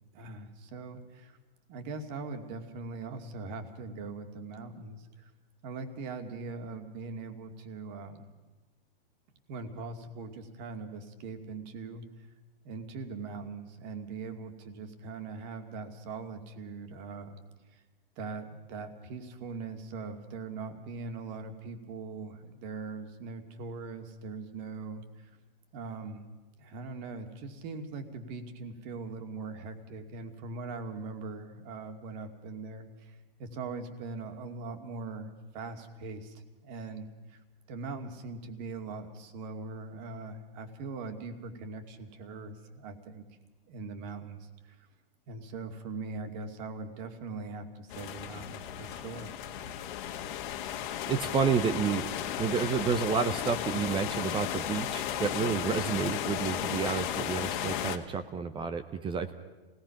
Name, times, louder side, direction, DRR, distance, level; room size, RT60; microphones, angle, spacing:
voice 1, 0.1-1.4 1.7-5.3 5.6-8.3 9.5-12.0 12.6-17.4 18.2-25.3 25.7-26.2 26.6-37.4 37.7-43.3 43.7-44.9 45.3-49.3, right 4 dB, 45° right, 6 dB, 2.5 m, -41 dB
sound 1, 47.9-58.0, left 10 dB, 50° left, 1.7 m, -34 dB
voice 2, 51.1-52.1 52.4-59.3, right 6 dB, 15° right, 10 dB, 0.8 m, -30 dB
27.0 x 18.5 x 5.9 m, 1.2 s
hypercardioid pair, 130°, 31 cm